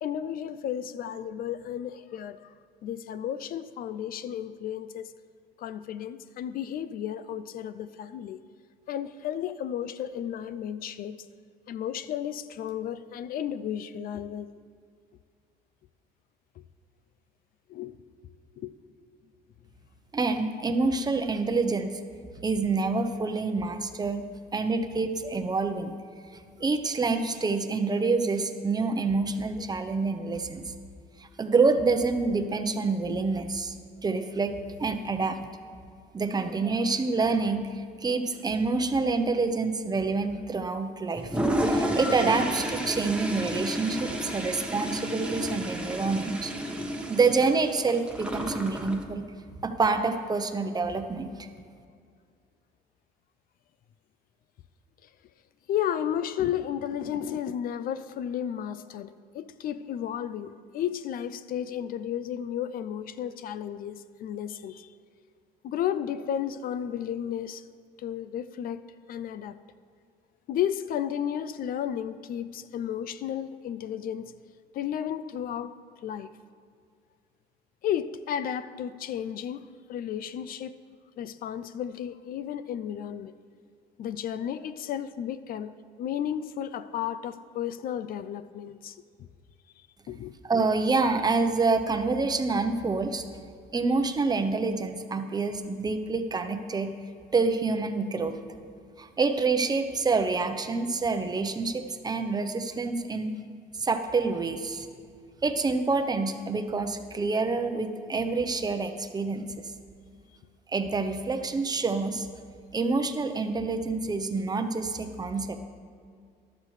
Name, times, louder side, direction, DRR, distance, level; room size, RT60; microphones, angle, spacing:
voice 1, 0.0-2.5 2.8-5.1 5.6-8.4 8.9-11.3 11.7-14.5 16.6-16.7 17.7-18.0 18.6-18.7 55.7-64.9 65.6-67.6 68.0-68.8 69.1-69.6 70.5-74.3 74.7-75.7 76.0-76.3 77.8-80.7 81.2-83.3 84.0-89.3 90.1-90.3, left 9 dB, 60° left, 14 dB, 0.4 m, -33 dB
voice 2, 20.1-22.0 22.4-24.2 24.5-25.9 26.6-30.7 31.2-33.8 34.0-35.4 36.1-41.4 41.7-49.3 49.6-51.5 90.4-93.2 93.7-96.9 97.3-98.3 99.0-103.3 103.8-104.9 105.4-109.5 110.7-112.3 112.7-115.6, right 4 dB, 25° right, 7 dB, 0.8 m, -27 dB
Toilet flush, 41.2-49.0, equal, 5° right, 1.2 m, -31 dB
14.0 x 12.0 x 3.2 m, 2.2 s
cardioid pair, 110°, 17 cm